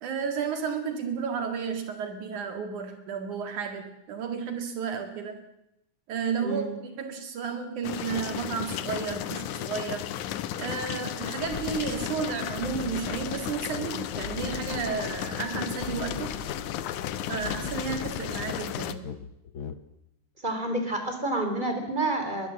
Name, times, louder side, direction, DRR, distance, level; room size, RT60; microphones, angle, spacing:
voice 1, 0.0-5.4 6.1-10.1 10.6-16.4 17.3-19.1, right 6 dB, 75° right, 6 dB, 3.4 m, -32 dB
sound 1, 7.8-18.9, left 11 dB, 75° left, 2.4 m, -34 dB
sound 2, 11.4-18.8, left 3 dB, 40° left, 2.0 m, -45 dB
sound 3, 13.7-14.0 14.2-19.8, left 7 dB, 55° left, 1.6 m, -42 dB
voice 2, 20.4-22.5, right 2 dB, 15° right, 5 dB, 4.0 m, -29 dB
22.0 x 21.5 x 7.7 m, 0.85 s
omnidirectional pair, 3.6 m